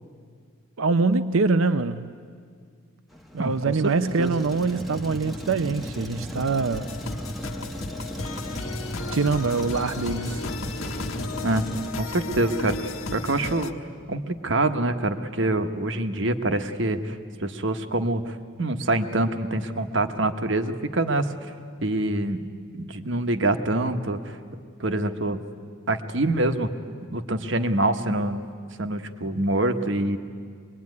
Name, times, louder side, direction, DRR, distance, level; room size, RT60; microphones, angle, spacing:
voice 1, 0.8-2.1 3.3-6.9 9.1-10.4, right 4 dB, 75° right, 11 dB, 0.6 m, -24 dB
Truck, 3.1-11.9, equal, ahead, 1.1 m, -35 dB
voice 2, 3.4-4.3 11.4-11.7 12.0-13.7 14.1-21.3 21.8-22.4 22.7-24.2 24.8-25.4 25.9-26.7 27.1-28.4 28.8-30.2, right 1 dB, 60° right, 8 dB, 1.3 m, -25 dB
sound 1, 6.7-13.7, left 3 dB, 90° left, 1.4 m, -34 dB
25.0 x 21.5 x 9.6 m, 2.1 s
head